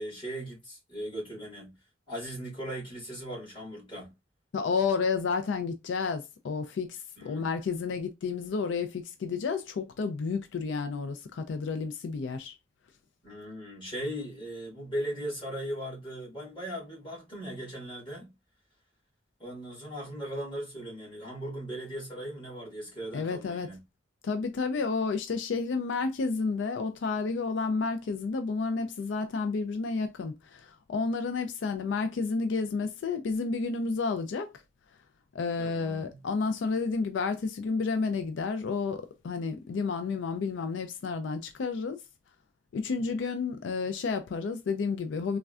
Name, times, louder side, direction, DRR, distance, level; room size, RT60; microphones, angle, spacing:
voice 1, 0.0-1.7 2.1-4.1 7.2-7.5 13.2-18.3 19.4-23.8 35.6-36.2, right 1 dB, 30° left, 1.6 m, -38 dB
voice 2, 4.5-12.5 23.1-23.7 24.2-34.5 35.3-42.0 42.7-45.4, left 4 dB, 90° left, 0.4 m, -31 dB
3.4 x 2.1 x 2.4 m
head